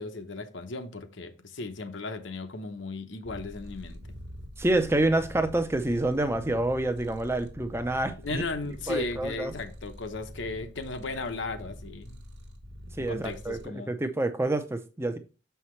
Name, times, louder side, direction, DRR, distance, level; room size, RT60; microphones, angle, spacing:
voice 1, 0.0-4.0 8.2-12.2 13.0-14.0, left 3 dB, 75° left, 0.9 m, -36 dB
Purr, 3.2-13.7, equal, 55° right, 1.2 m, -45 dB
voice 2, 4.6-8.4 8.9-9.5 13.0-15.2, right 2 dB, 15° right, 0.5 m, -27 dB
6.7 x 5.7 x 3.1 m
head